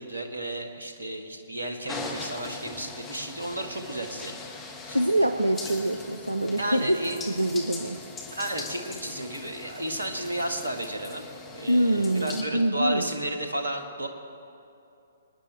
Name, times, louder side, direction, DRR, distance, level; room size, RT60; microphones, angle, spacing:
voice 1, 0.0-4.4 6.6-7.2 8.3-11.2 11.5-14.1, right 1 dB, 70° right, 4 dB, 1.6 m, -32 dB
sound 1, 1.9-12.4, left 3 dB, 15° left, 1.6 m, -41 dB
voice 2, 4.9-7.0 7.3-8.0 11.7-13.1, right 1 dB, 85° right, 8 dB, 0.6 m, -25 dB
25.0 x 10.0 x 3.4 m, 2.7 s
figure-of-eight pair, 125°, 0 cm